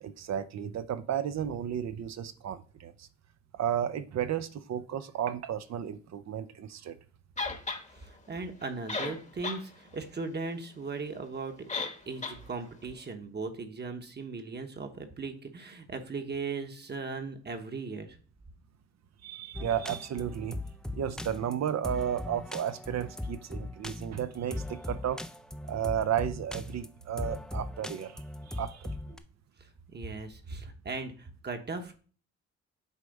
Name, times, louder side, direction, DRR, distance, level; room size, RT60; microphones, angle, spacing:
voice 1, 0.0-3.1 3.5-7.0 19.2-20.6 20.9-25.2 25.7-28.2 28.5-29.2, right 9 dB, 65° right, 0.7 m, -33 dB
sound 1, 7.4-7.8 8.6-8.7 8.9-9.6 10.0-10.1 11.7-12.0 12.2-12.4, left 3 dB, 25° left, 1.1 m, -33 dB
voice 2, 8.0-11.7 12.1-18.2 29.6-32.0, right 4 dB, 35° right, 1.1 m, -38 dB
sound 2, 19.5-29.2, left 1 dB, ahead, 0.4 m, -39 dB
8.3 x 3.4 x 5.2 m
cardioid pair, 105°, 29 cm